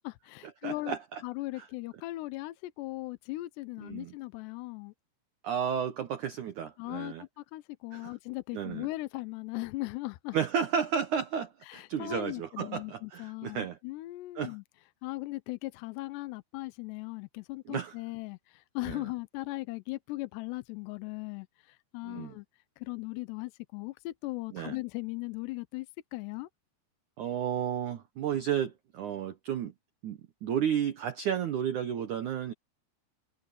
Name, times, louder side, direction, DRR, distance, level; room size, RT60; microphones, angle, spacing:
voice 1, 0.0-1.0 1.2-4.9 6.8-10.4 11.6-14.6 15.0-22.5 22.8-26.5, left 20 dB, 80° left, 2.7 m, -38 dB
voice 2, 0.6-1.2 1.6-1.7 3.8-4.1 5.4-7.2 7.9-8.1 8.5-8.9 10.3-13.8 14.3-14.5 17.7-17.9 18.9-19.0 22.0-22.3 24.5-24.8 27.2-29.7 30.0-32.5, right 8 dB, 85° right, 1.7 m, -32 dB
omnidirectional pair, 5.3 m